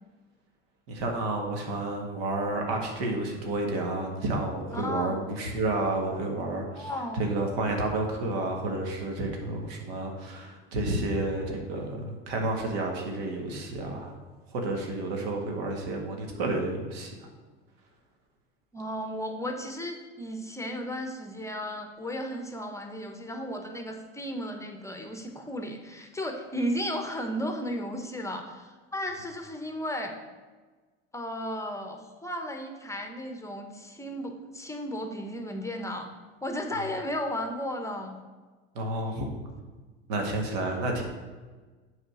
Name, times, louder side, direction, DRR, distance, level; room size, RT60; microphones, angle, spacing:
voice 1, 0.9-14.1 14.5-17.3 38.8-39.3 40.1-41.0, right 2 dB, 75° right, 2 dB, 1.8 m, -30 dB
voice 2, 4.7-5.2 6.8-7.2 18.7-30.2 31.1-36.1 36.4-38.2, equal, 10° left, 4 dB, 1.1 m, -34 dB
7.9 x 4.2 x 6.3 m, 1.4 s
hypercardioid pair, 80°, 30 cm